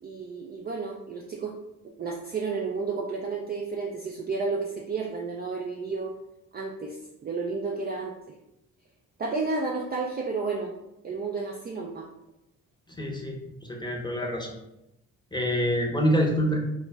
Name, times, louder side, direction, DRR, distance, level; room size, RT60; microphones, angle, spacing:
voice 1, 0.0-1.6 2.0-6.1 6.5-8.2 9.2-10.7 11.0-12.1, right 4 dB, 25° right, 0 dB, 0.4 m, -31 dB
voice 2, 12.9-14.6 15.3-16.6, equal, 10° left, -1 dB, 0.8 m, -26 dB
2.3 x 2.0 x 3.3 m, 0.87 s
hypercardioid pair, 40°, 40 cm